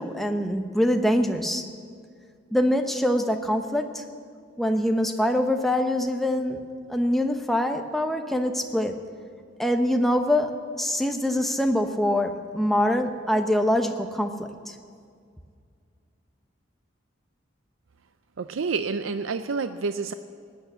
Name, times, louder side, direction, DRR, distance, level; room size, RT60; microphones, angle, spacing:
voice 1, 0.0-1.6 2.5-4.0 4.6-6.6 6.9-9.0 9.6-10.5 10.8-14.7, left 1 dB, ahead, 4 dB, 0.8 m, -24 dB
voice 2, 18.4-20.1, right 4 dB, 85° right, 10 dB, 0.5 m, -28 dB
19.0 x 9.3 x 8.1 m, 2.2 s
head